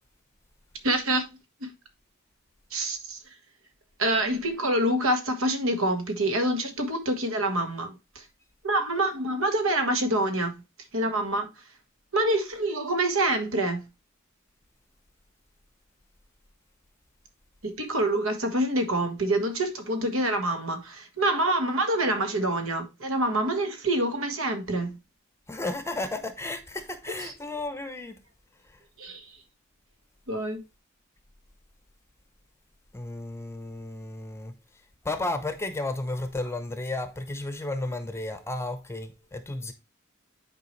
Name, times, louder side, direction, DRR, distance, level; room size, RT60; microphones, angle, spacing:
voice 1, 0.8-1.3 1.6-1.7 2.7-3.2 4.0-8.2 8.6-10.5 10.9-11.5 12.1-13.8 17.6-25.0 27.1-27.3 29.0-29.3 30.3-30.6, right 1 dB, 70° right, 1.6 m, -26 dB
voice 2, 25.5-28.2 32.9-34.5 35.0-39.7, left 2 dB, 15° left, 0.8 m, -33 dB
9.7 x 4.8 x 3.2 m
head